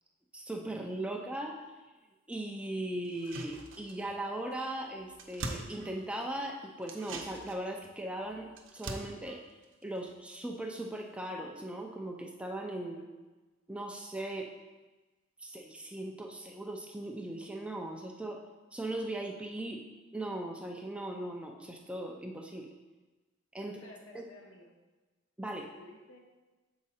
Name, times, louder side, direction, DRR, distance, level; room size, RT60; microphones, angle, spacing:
voice 1, 0.3-1.9 2.3-13.0 13.7-14.5 15.4-18.4 18.7-19.8 20.1-22.7 23.5-23.8 24.1-24.2 25.4-25.7, right 1 dB, 5° right, 1 dB, 0.5 m, -39 dB
sound 1, 3.0-4.2 4.5-4.6 4.9-6.4 6.8-10.6 10.9-11.0, right 2 dB, 60° right, 0.8 m, -44 dB
voice 2, 23.6-24.7 25.8-26.2, left 2 dB, 65° left, 1 dB, 1.1 m, -53 dB
7.0 x 4.8 x 4.2 m, 1.2 s
head